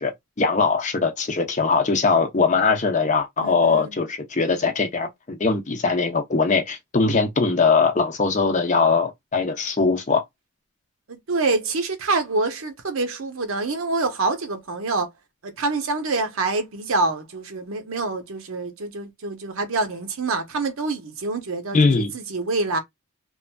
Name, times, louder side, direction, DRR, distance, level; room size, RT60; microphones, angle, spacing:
voice 1, 0.0-10.2 21.7-22.1, left 4 dB, 35° left, 0.6 m, -21 dB
voice 2, 3.4-4.1 11.1-15.1 15.4-22.8, right 3 dB, 70° right, 0.7 m, -26 dB
3.0 x 2.5 x 2.2 m
head